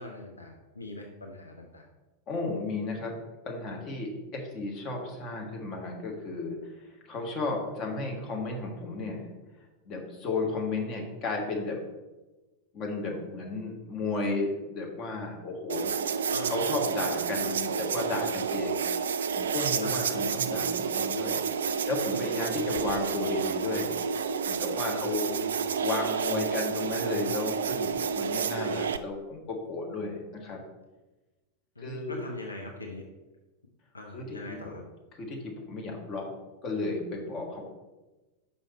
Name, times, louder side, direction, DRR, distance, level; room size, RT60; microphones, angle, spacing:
voice 1, 0.0-1.9 16.3-16.6 19.8-20.1 22.5-22.7 25.3-25.5 31.8-33.0 33.9-34.8, left 2 dB, 80° left, 2 dB, 0.7 m, -42 dB
voice 2, 2.3-3.2 3.4-9.3 9.8-11.8 12.7-16.2 16.5-24.1 24.5-25.3 25.8-30.6 31.8-32.2 34.1-34.7 35.2-36.3 36.6-37.6, left 3 dB, 35° left, 1 dB, 1.5 m, -34 dB
sound 1, 15.7-29.0, right 6 dB, 65° right, 0.3 m, -30 dB
5.6 x 5.6 x 4.2 m, 1.1 s
figure-of-eight pair, 90°, 0 cm